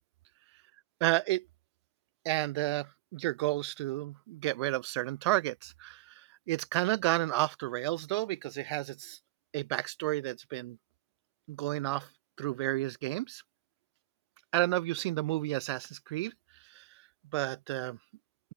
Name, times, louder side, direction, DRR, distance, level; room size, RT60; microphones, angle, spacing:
voice 1, 1.0-1.5 2.2-9.2 9.5-10.8 11.5-12.1 12.4-13.4 14.5-16.3 16.7-16.8 17.3-18.0, right 18 dB, 65° right, 5.9 m, -31 dB
open air
supercardioid pair, 150°, 15 cm